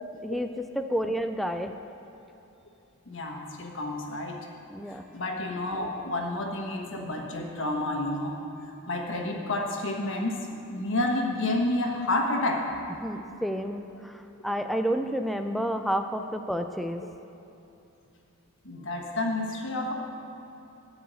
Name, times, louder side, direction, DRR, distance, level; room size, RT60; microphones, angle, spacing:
voice 1, 0.2-1.7 4.7-5.1 13.0-17.0, equal, ahead, 6 dB, 0.3 m, -30 dB
voice 2, 3.1-4.4 4.9-8.4 8.9-12.6 16.2-16.3 18.6-19.9, left 2 dB, 60° left, 1 dB, 1.3 m, -30 dB
11.5 x 4.8 x 8.1 m, 2.8 s
head